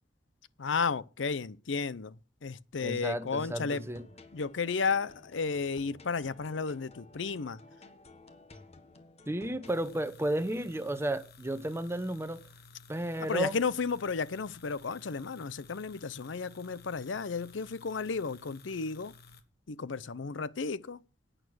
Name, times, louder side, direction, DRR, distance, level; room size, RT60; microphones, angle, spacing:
voice 1, 0.6-2.1 2.4-3.8 4.3-7.6 13.2-19.1 19.7-21.0, left 5 dB, 85° left, 0.6 m, -33 dB
voice 2, 2.8-4.1 9.3-12.4 12.9-13.6, right 1 dB, 15° right, 0.8 m, -33 dB
sound 1, 2.9-9.9, left 2 dB, 35° left, 1.4 m, -55 dB
sound 2, 9.6-19.4, left 4 dB, 60° left, 1.4 m, -55 dB
11.0 x 9.1 x 6.3 m
head